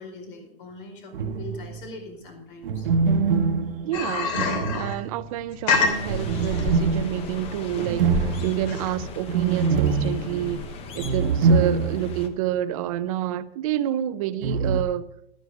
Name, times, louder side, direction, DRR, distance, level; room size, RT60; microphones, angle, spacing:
voice 1, 0.0-2.9, left 2 dB, 60° left, 4.4 m, -41 dB
sound 1, 1.1-1.9 2.6-5.4 6.1-12.3 12.6-12.7 14.4-14.8, right 5 dB, 65° right, 1.1 m, -24 dB
voice 2, 3.8-4.4 4.7-10.6 11.0-15.1, right 12 dB, 35° right, 0.6 m, -28 dB
sound 2, 3.9-9.1, left 4 dB, 45° left, 3.1 m, -27 dB
sound 3, 5.8-12.3, left 3 dB, 20° left, 0.8 m, -36 dB
12.0 x 9.6 x 5.3 m
hypercardioid pair, 155°, 30 cm